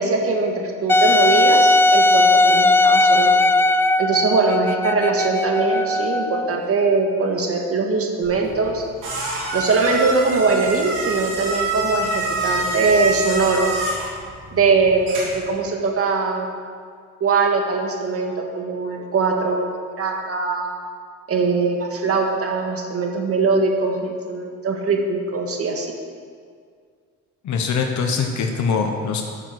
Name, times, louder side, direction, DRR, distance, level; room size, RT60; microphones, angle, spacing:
voice 1, 0.0-3.4 4.0-8.8 9.5-13.7 14.5-16.5 17.2-20.7 21.3-25.9, right 4 dB, 50° right, 2 dB, 1.9 m, -21 dB
Wind instrument woodwind instrument, 0.9-6.5, left 2 dB, 10° left, 0.3 m, -17 dB
sound 1, 8.2-15.5, right 2 dB, 90° right, 3.1 m, -27 dB
voice 2, 27.4-29.2, left 5 dB, 70° left, 3 dB, 1.2 m, -22 dB
13.0 x 6.9 x 6.4 m, 2.1 s
cardioid pair, 90°, 30 cm